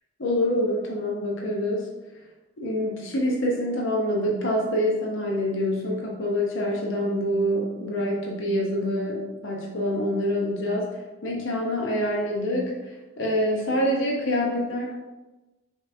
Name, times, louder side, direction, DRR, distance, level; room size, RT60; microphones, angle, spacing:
voice 1, 0.2-1.9 2.6-10.9 11.2-15.0, equal, 60° left, -2 dB, 0.6 m, -26 dB
5.4 x 3.0 x 2.5 m, 1.1 s
head